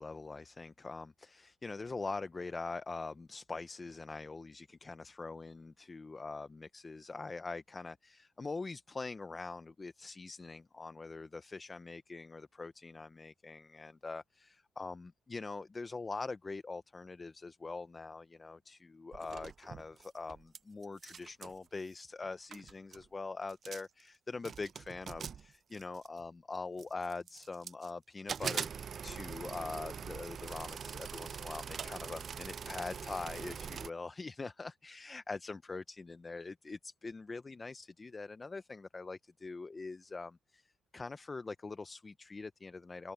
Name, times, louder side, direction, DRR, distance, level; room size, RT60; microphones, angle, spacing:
voice 1, 0.0-43.1, left 3 dB, 25° left, 0.8 m, -43 dB
sound 1, 19.1-20.6 20.8-21.6 22.2-22.3 22.5-23.1 23.5-24.0 24.4-26.2 26.8-27.9 28.3-33.9, right 7 dB, 50° right, 0.4 m, -43 dB
open air
cardioid pair, 90°, 0 cm